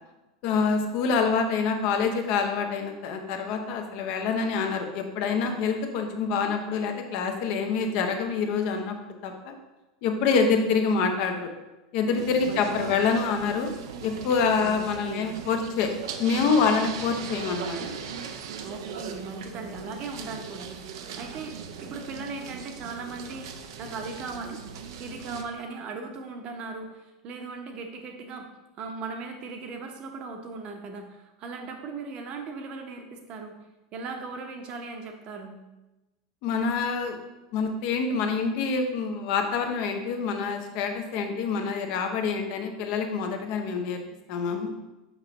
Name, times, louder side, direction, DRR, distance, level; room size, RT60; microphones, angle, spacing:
voice 1, 0.4-9.0 9.2-9.5 10.0-11.5 11.9-13.7 14.0-15.9 16.2-17.8 36.4-37.2 37.5-44.0 44.3-44.7, left 5 dB, 55° left, 4 dB, 0.9 m, -26 dB
sound 1, 12.2-25.4, right 6 dB, 65° right, 0.5 m, -39 dB
voice 2, 12.5-13.1 14.6-15.4 18.6-20.7 21.2-24.6 25.0-28.5 28.8-33.5 33.9-35.6, right 4 dB, 45° right, 4 dB, 0.9 m, -38 dB
5.7 x 5.4 x 3.1 m, 1.0 s
hypercardioid pair, 90°, 2 cm